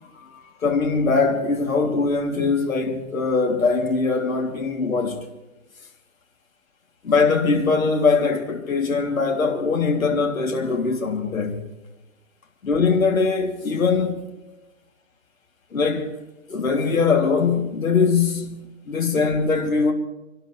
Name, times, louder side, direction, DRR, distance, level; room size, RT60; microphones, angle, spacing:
voice 1, 0.2-5.2 7.0-11.6 12.6-14.2 15.7-16.1 16.5-19.9, left 4 dB, 85° left, 3.2 m, -21 dB
28.5 x 12.0 x 3.4 m
hypercardioid pair, 140°, 40 cm